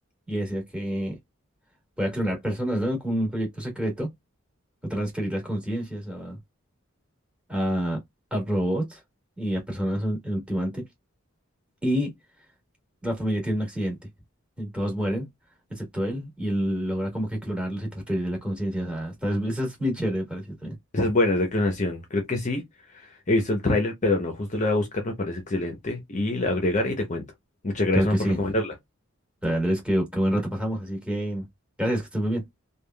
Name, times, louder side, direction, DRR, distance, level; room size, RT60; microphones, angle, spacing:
voice 1, 0.3-1.2 2.0-4.1 4.8-6.4 7.5-8.0 8.3-9.0 9.4-10.8 11.8-12.1 13.0-14.0 14.6-15.3 15.7-20.8 27.9-28.4 29.4-31.5 31.8-32.4, equal, 5° right, 1.5 m, -27 dB
voice 2, 20.9-27.2 27.6-28.7, left 2 dB, 35° left, 0.7 m, -25 dB
3.4 x 2.3 x 2.2 m
head